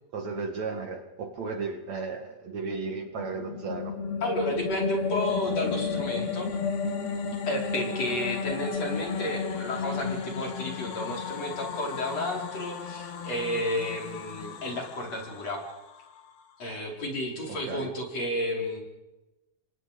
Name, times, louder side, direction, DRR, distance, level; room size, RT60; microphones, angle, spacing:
voice 1, 0.1-4.0 17.5-17.9, right 4 dB, 55° right, 5 dB, 3.0 m, -34 dB
sound 1, 2.9-16.2, left 5 dB, 85° left, 4.4 m, -33 dB
voice 2, 4.2-6.5 7.4-15.6 16.6-18.8, left 1 dB, 45° left, 1 dB, 5.9 m, -32 dB
29.5 x 25.0 x 5.2 m, 1.0 s
omnidirectional pair, 4.3 m